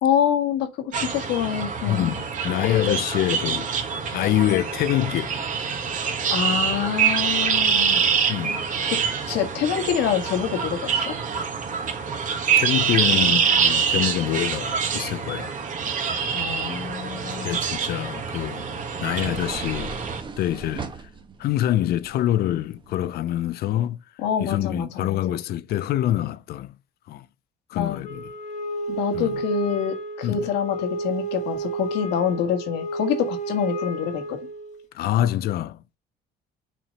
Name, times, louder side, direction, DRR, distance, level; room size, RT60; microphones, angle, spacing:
voice 1, 0.0-2.0 6.3-8.0 8.9-9.0 9.3-11.1 16.3-17.7 24.2-25.4 27.7-28.0 28.9-34.4, left 8 dB, 90° left, 1.8 m, -26 dB
sound 1, 0.9-20.2, right 6 dB, 50° right, 1.7 m, -25 dB
voice 2, 1.8-3.7 4.1-5.3 8.3-8.6 12.6-15.6 17.4-19.9 20.4-20.9 21.4-24.0 24.4-26.7 27.1-27.3 27.7-28.2 29.1-29.4 30.2-30.5 34.9-36.0, left 13 dB, 65° left, 0.6 m, -25 dB
sound 2, 17.5-23.0, right 4 dB, 30° right, 1.2 m, -40 dB
Wind instrument woodwind instrument, 28.0-34.8, right 2 dB, 45° left, 1.4 m, -31 dB
5.9 x 4.7 x 5.4 m
cardioid pair, 110°, 17 cm